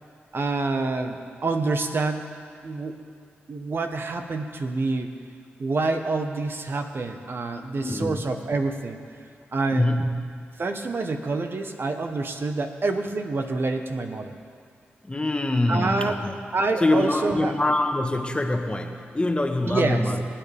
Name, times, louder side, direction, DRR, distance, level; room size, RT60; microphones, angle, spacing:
voice 1, 0.3-2.3 2.6-3.0 3.5-5.1 5.6-9.0 9.5-9.9 10.6-14.3 15.7-16.2 16.5-17.5 19.6-20.0, right 3 dB, 55° right, 5 dB, 1.1 m, -27 dB
voice 2, 7.8-8.2 9.7-10.1 15.0-16.3 16.8-20.2, left 2 dB, 25° left, 4 dB, 1.4 m, -24 dB
26.0 x 8.7 x 3.5 m, 2.2 s
supercardioid pair, 45°, 5 cm